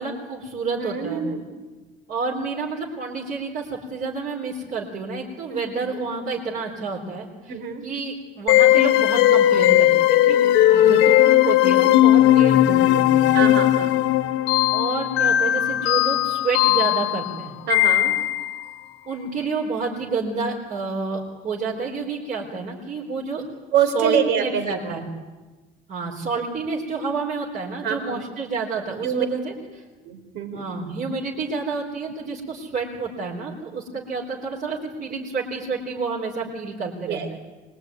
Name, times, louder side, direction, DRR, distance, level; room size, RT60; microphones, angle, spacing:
voice 1, 0.0-1.3 2.1-7.3 7.8-13.3 14.7-17.5 19.0-23.4 23.9-25.0 25.9-29.8 30.5-37.4, right 4 dB, 45° right, -3 dB, 4.2 m, -29 dB
voice 2, 0.8-1.4 5.5-5.7 7.5-7.8 13.3-13.9 17.7-18.1 23.7-25.0 27.8-28.2 29.0-29.3 30.0-30.6 37.1-37.4, right 7 dB, 70° right, 6 dB, 4.0 m, -25 dB
sound 1, 8.5-18.6, left 13 dB, 85° left, 1.4 m, -17 dB
24.0 x 21.0 x 9.6 m, 1.2 s
cardioid pair, 155°, 19 cm